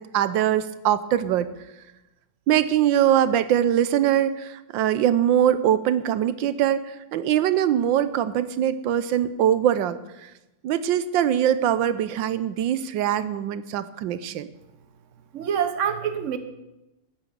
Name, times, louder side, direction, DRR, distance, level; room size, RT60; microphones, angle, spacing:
voice 1, 0.0-1.5 2.5-10.0 10.6-14.5, right 10 dB, 85° right, 14 dB, 1.4 m, -22 dB
voice 2, 15.3-16.4, right 8 dB, 45° right, 9 dB, 1.3 m, -26 dB
13.0 x 9.5 x 6.9 m, 0.98 s
omnidirectional pair, 2.0 m